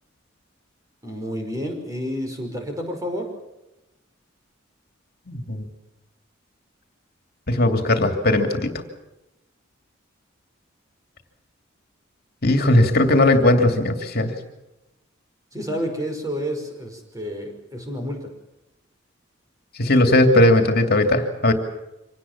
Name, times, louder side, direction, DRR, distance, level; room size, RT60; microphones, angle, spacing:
voice 1, 1.0-3.3 15.5-18.3, equal, 15° right, 3 dB, 5.4 m, -30 dB
voice 2, 5.3-5.7 7.5-8.7 12.4-14.4 19.8-21.5, left 1 dB, 50° left, 5 dB, 2.7 m, -18 dB
26.0 x 18.5 x 7.4 m, 0.95 s
head